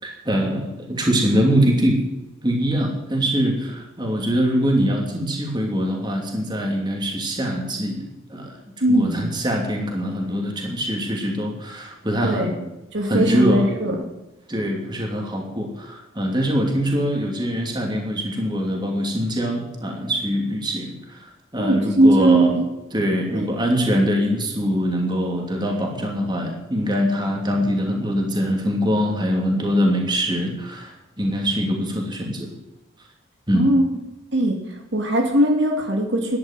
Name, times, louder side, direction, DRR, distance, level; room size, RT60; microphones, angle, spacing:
voice 1, 0.0-2.0 2.4-8.0 8.3-8.5 8.9-12.5 13.0-13.7 14.5-22.6 22.9-32.5 33.5-33.7, equal, 20° right, 1 dB, 2.8 m, -23 dB
voice 2, 8.8-9.3 12.2-12.5 12.9-14.0 21.6-22.6 23.3-23.5 33.5-33.8 34.3-34.6 34.9-36.4, right 1 dB, 60° right, 2 dB, 2.5 m, -19 dB
12.5 x 10.5 x 7.5 m, 0.98 s
head